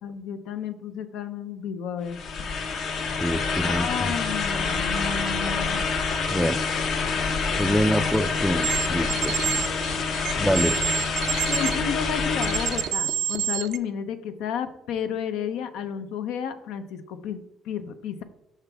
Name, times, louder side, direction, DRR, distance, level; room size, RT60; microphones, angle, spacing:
voice 1, 0.0-2.2 3.6-5.8 7.6-8.1 11.5-17.4 17.6-18.2, left 7 dB, 85° left, 9 dB, 0.6 m, -32 dB
sound 1, 2.1-12.9, left 4 dB, 65° left, 0.9 m, -27 dB
voice 2, 3.1-4.1 6.3-6.6 7.6-9.3 10.3-10.8, equal, ahead, 12 dB, 0.3 m, -25 dB
sound 2, 8.6-11.8 12.4-13.8, right 9 dB, 75° right, 0.4 m, -28 dB
5.8 x 5.7 x 3.4 m, 0.88 s
cardioid pair, 105°, 0 cm